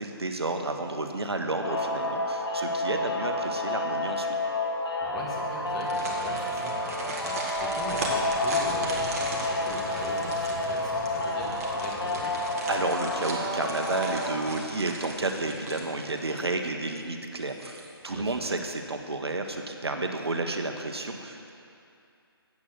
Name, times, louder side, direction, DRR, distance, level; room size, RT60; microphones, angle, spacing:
voice 1, 0.0-4.4 12.7-21.5, right 2 dB, 80° right, 4 dB, 1.0 m, -31 dB
sound 1, 1.6-14.4, left 2 dB, 70° left, 1.8 m, -30 dB
voice 2, 5.0-12.4 18.1-18.4, equal, ahead, -10 dB, 1.7 m, -39 dB
sound 2, 5.7-16.6 17.0-17.1 17.5-18.1 18.5-18.6, right 2 dB, 35° right, 1.4 m, -38 dB
sound 3, 7.5-18.6, left 1 dB, 35° left, 1.7 m, -48 dB
8.5 x 8.2 x 6.7 m, 2.6 s
figure-of-eight pair, 150°, 13 cm